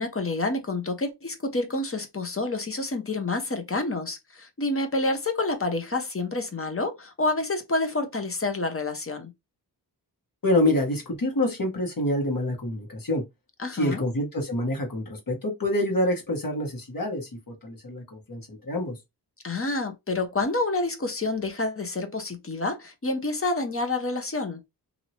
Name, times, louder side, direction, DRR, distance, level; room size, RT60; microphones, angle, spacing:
voice 1, 0.0-9.3 13.6-14.0 19.4-24.6, left 2 dB, 35° left, 0.8 m, -28 dB
voice 2, 10.4-13.2 13.7-19.0, left 1 dB, 55° left, 1.4 m, -27 dB
2.9 x 2.8 x 2.8 m
wide cardioid pair, 80°, 40 cm